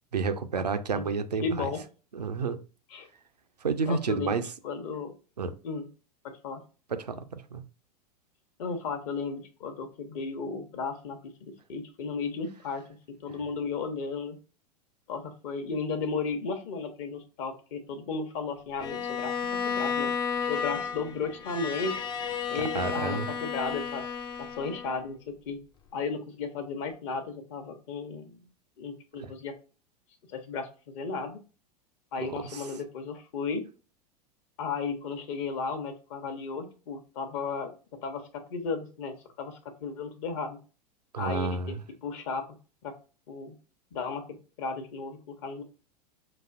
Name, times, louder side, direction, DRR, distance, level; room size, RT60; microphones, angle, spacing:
voice 1, 0.1-1.7 2.1-2.6 3.6-4.5 5.4-5.6 6.9-7.6 22.5-23.3 29.2-29.3 32.2-32.7 41.1-41.8, right 5 dB, 80° right, 0.5 m, -31 dB
voice 2, 1.4-1.8 2.9-3.1 3.9-5.1 5.6-5.9 6.2-6.6 8.6-14.4 15.1-20.1 20.5-22.0 22.5-24.0 24.4-25.6 25.9-28.4 28.8-29.5 30.3-31.4 32.1-33.7 34.6-37.7 38.0-40.6 41.2-41.8 42.0-42.5 42.8-42.9 43.3-43.6 43.9-45.6, left 4 dB, 50° left, 0.9 m, -34 dB
Bowed string instrument, 18.8-25.0, left 6 dB, 20° left, 0.4 m, -32 dB
5.8 x 2.5 x 2.4 m
figure-of-eight pair, 85°, 21 cm